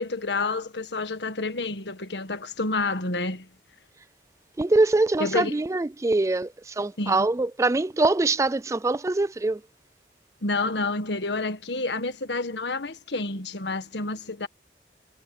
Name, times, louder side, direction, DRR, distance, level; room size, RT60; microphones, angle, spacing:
voice 1, 0.0-3.5 5.2-5.5 7.0-7.3 10.4-14.5, left 3 dB, 75° left, 1.7 m, -29 dB
voice 2, 4.6-9.6, right 2 dB, 15° right, 0.3 m, -23 dB
head